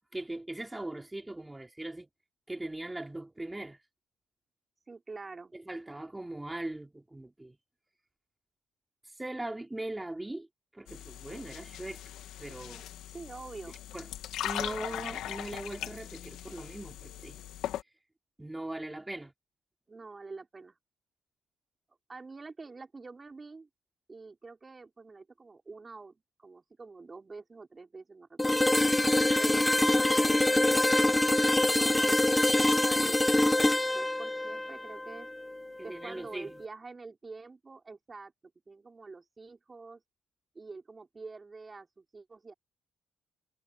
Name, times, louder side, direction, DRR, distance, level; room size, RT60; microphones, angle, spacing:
voice 1, 0.1-2.1 2.5-3.8 5.5-7.6 9.2-10.5 10.7-12.0 12.4-12.9 13.9-14.1 14.4-17.4 18.4-19.3 35.8-36.5, right 1 dB, 10° right, 4.6 m, -40 dB
voice 2, 4.9-5.5 13.1-13.8 19.9-20.7 22.1-23.7 24.1-29.0 29.4-32.2 32.5-35.3 35.8-38.3 38.7-40.0 40.5-42.5, right 4 dB, 30° right, 5.4 m, -46 dB
sound 1, 10.9-17.8, left 12 dB, 85° left, 2.2 m, -40 dB
sound 2, 28.4-36.2, left 1 dB, 10° left, 1.1 m, -25 dB
cardioid pair, 90°, 0 cm